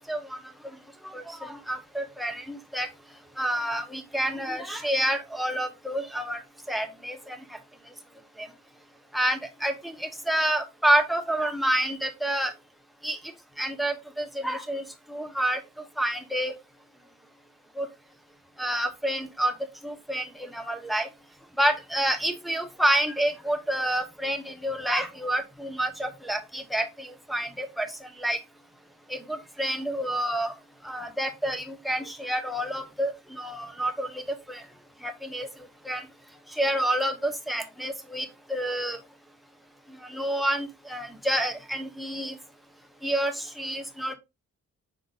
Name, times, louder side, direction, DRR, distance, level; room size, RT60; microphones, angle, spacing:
voice 1, 0.1-0.4 1.1-2.9 3.4-6.4 6.7-7.4 8.4-8.5 9.1-12.5 13.0-13.2 13.6-14.8 15.1-15.6 16.0-16.5 17.8-17.9 18.6-19.5 19.8-21.1 21.6-28.4 29.1-30.5 30.8-34.2 34.5-34.6 35.0-35.5 35.8-36.0 36.6-39.0 40.1-42.4 43.0-44.1, right 1 dB, ahead, 0.8 m, -28 dB
5.2 x 3.8 x 2.3 m
wide cardioid pair, 105°, 31 cm